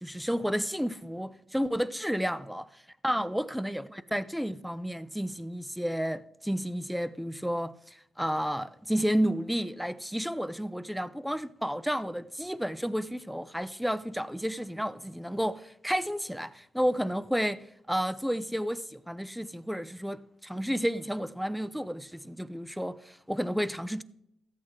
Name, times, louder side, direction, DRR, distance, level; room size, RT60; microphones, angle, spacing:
voice 1, 0.0-2.6 3.0-17.6 17.9-24.0, equal, ahead, 0.6 m, -31 dB
14.0 x 8.4 x 3.6 m
cardioid pair, 90°, 0 cm